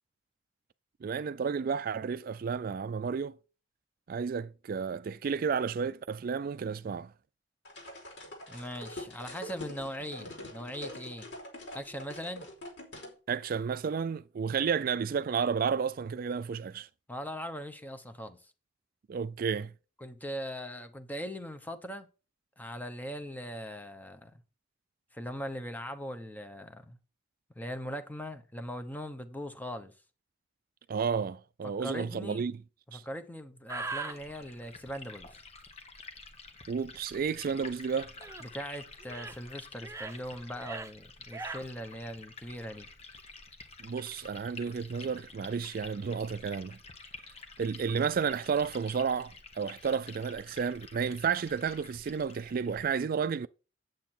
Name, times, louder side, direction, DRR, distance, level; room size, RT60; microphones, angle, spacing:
voice 1, 1.0-3.4 4.1-7.1 13.3-16.9 19.1-19.7 30.9-32.6 32.9-33.0 36.7-38.1 43.8-46.8 47.6-53.5, right 6 dB, 50° right, 0.4 m, -32 dB
sound 1, 7.6-13.1, left 1 dB, 70° left, 4.6 m, -44 dB
voice 2, 8.5-11.3 11.7-12.5 17.1-18.4 20.0-22.1 22.6-24.4 25.1-27.0 27.5-29.9 31.8-32.4 32.9-35.4 38.4-42.9, equal, 10° left, 0.9 m, -40 dB
sound 2, 33.7-34.2 38.2-38.5 39.0-39.4 39.8-40.2 40.5-40.9 41.3-41.6, right 3 dB, 15° right, 0.8 m, -39 dB
Liquid, 33.8-52.9, left 3 dB, 35° left, 1.4 m, -50 dB
9.1 x 7.9 x 4.4 m
head